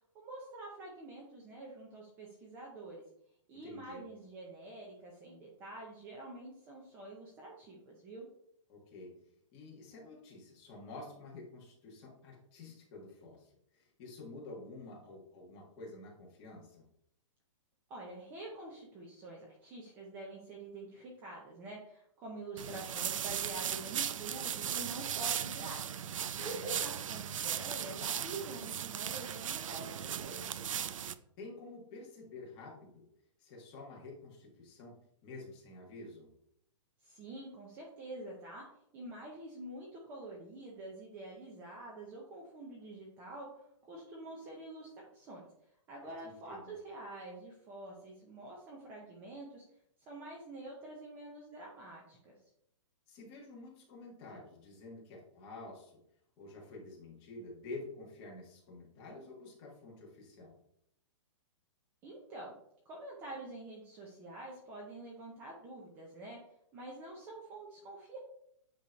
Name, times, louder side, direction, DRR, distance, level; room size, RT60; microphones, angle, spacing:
voice 1, 0.1-3.0 3.5-8.3 17.9-30.7 37.0-38.6 38.9-45.5 45.9-49.6 50.0-52.4 62.0-62.6 62.8-66.4 66.7-68.2, right 2 dB, 10° right, -2 dB, 0.7 m, -47 dB
voice 2, 3.5-4.0 8.7-9.1 9.5-16.8 26.4-26.8 31.4-33.0 33.4-34.9 35.2-36.3 46.0-46.7 53.1-56.0 56.4-60.5, left 2 dB, 20° left, -2 dB, 1.5 m, -49 dB
sound 1, 22.6-31.1, right 9 dB, 85° right, 0.5 m, -37 dB
8.5 x 3.1 x 5.1 m, 0.75 s
hypercardioid pair, 180°, 16 cm